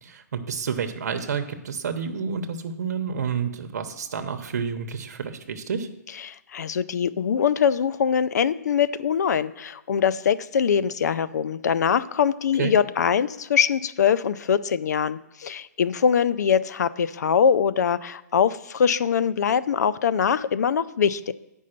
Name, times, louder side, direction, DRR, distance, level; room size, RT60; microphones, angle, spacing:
voice 1, 0.0-5.9 12.6-12.7, right 6 dB, 70° right, 7 dB, 0.9 m, -29 dB
voice 2, 6.2-21.3, left 7 dB, 70° left, 16 dB, 0.5 m, -23 dB
8.6 x 5.4 x 6.6 m, 0.92 s
hypercardioid pair, 165°, 9 cm